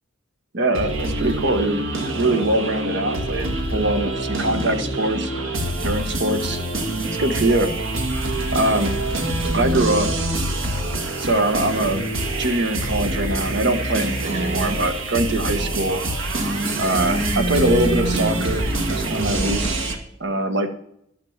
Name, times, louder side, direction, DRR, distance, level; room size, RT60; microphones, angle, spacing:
voice 1, 0.5-1.8 2.1-5.5 5.8-6.6 7.2-7.7 8.5-8.9 9.5-10.3 11.2-12.0 12.4-16.0 16.8-20.7, right 1 dB, 60° right, 7 dB, 1.4 m, -23 dB
sound 1, 0.7-20.0, right 1 dB, 85° right, 1.8 m, -25 dB
Female speech woman speaking, 14.2-14.8 16.3-18.6, right 2 dB, 35° right, 1.2 m, -27 dB
12.0 x 6.2 x 7.3 m, 0.73 s
head